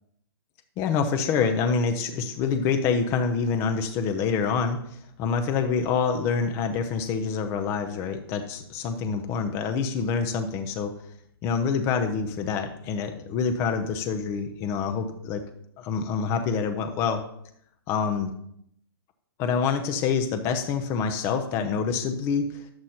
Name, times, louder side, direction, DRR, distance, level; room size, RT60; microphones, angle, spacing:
voice 1, 0.8-4.8 5.2-10.9 11.4-15.4 15.8-17.2 17.9-18.3 19.4-22.6, left 5 dB, 15° left, 6 dB, 0.6 m, -26 dB
10.5 x 7.8 x 4.3 m, 0.71 s
hypercardioid pair, 165°, 13 cm